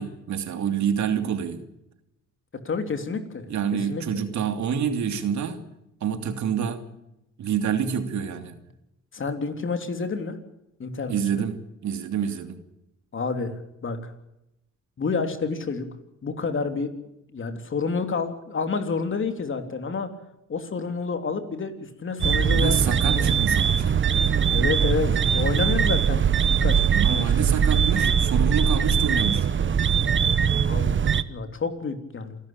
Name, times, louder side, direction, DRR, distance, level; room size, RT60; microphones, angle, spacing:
voice 1, 0.0-1.6 3.5-5.6 6.0-6.8 7.4-8.6 11.1-12.6 22.5-24.0 26.9-29.5, right 7 dB, 70° right, 7 dB, 2.9 m, -27 dB
voice 2, 2.6-3.5 3.9-4.0 9.1-10.4 10.8-11.4 13.1-14.1 15.0-15.9 16.2-16.9 17.3-20.1 20.5-23.5 24.5-26.9 27.1-27.3 30.6-30.9 31.3-32.4, left 4 dB, 40° left, 7 dB, 3.3 m, -29 dB
sound 1, 22.2-31.2, right 7 dB, 40° right, 1.1 m, -21 dB
27.5 x 12.5 x 8.8 m, 0.86 s
cardioid pair, 90°, 30 cm